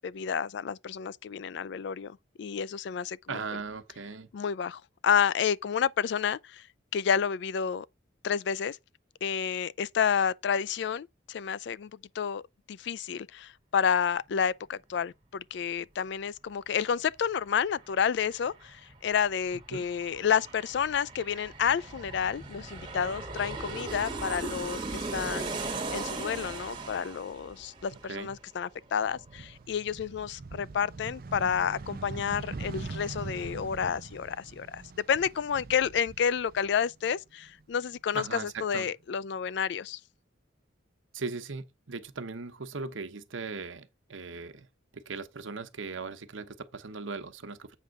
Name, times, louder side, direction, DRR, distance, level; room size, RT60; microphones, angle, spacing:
voice 1, 0.0-3.4 4.3-6.6 6.9-7.9 8.2-8.8 9.2-11.9 12.2-12.4 12.7-34.8 35.1-40.0, left 7 dB, 60° left, 0.3 m, -30 dB
voice 2, 3.3-4.3 19.7-19.8 27.9-28.4 38.1-38.9 41.1-44.7 44.9-47.8, right 4 dB, 80° right, 1.0 m, -38 dB
Aircraft, 17.1-17.2 17.5-28.8 29.1-29.2, right 3 dB, 25° right, 1.7 m, -39 dB
sound 1, 28.9-37.1 37.4-38.6, right 3 dB, 50° right, 0.5 m, -42 dB
8.2 x 3.5 x 6.5 m
head